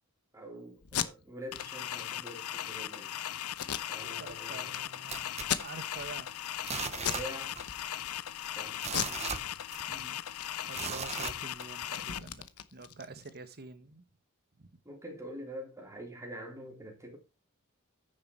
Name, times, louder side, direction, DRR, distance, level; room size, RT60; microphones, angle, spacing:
voice 1, 0.3-3.2 3.9-4.7 7.0-7.6 8.5-9.0 14.8-17.2, equal, 15° right, 3.2 m, -45 dB
Packing tape duct tape, 0.8-1.1 1.5-1.6 1.9-2.0 2.5-2.8 3.5-4.3 4.7-4.8 5.4-6.1 6.4-6.7 7.0-7.3 7.6-8.2 8.8-10.0 10.3-10.5 10.7-13.4, left 9 dB, 90° left, 0.9 m, -36 dB
sound 1, 1.5-12.2, left 12 dB, 70° left, 0.5 m, -39 dB
voice 2, 4.0-6.3 8.9-9.3 9.9-10.2 10.7-14.0 14.6-14.7, right 3 dB, 45° right, 1.2 m, -47 dB
sound 2, 5.1-6.2 6.6-7.8 8.0-8.1 8.6-10.1 10.7-11.9 12.4-12.5, right 6 dB, 30° right, 0.8 m, -39 dB
9.8 x 6.8 x 4.5 m
head